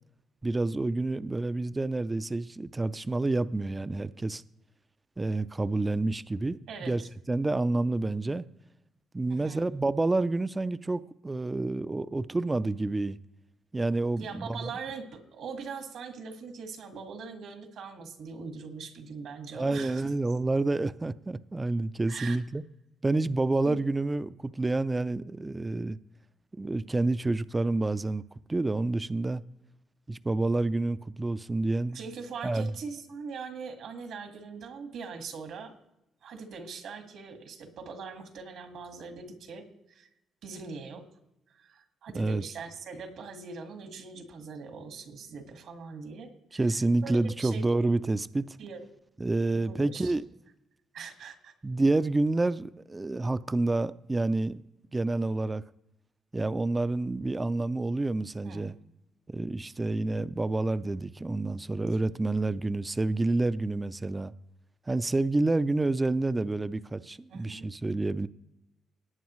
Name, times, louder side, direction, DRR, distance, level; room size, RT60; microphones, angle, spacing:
voice 1, 0.4-4.4 5.2-7.0 7.3-8.5 9.1-13.2 13.7-14.7 19.5-22.6 23.0-26.0 26.5-28.2 28.5-29.4 30.1-32.0 32.4-32.7 42.1-42.4 46.5-48.4 49.2-50.2 51.6-54.6 54.9-55.6 56.3-58.7 59.3-64.3 64.9-68.3, right 2 dB, 20° right, 0.4 m, -28 dB
voice 2, 6.7-7.1 9.3-9.6 14.2-20.0 22.1-22.4 23.6-23.9 31.9-35.7 36.2-40.1 40.4-41.0 41.5-47.6 48.6-48.8 49.6-50.2 50.9-51.5 58.4-58.7 67.3-67.7, right 5 dB, 75° right, 1.8 m, -42 dB
18.5 x 8.8 x 3.1 m
cardioid pair, 90°, 0 cm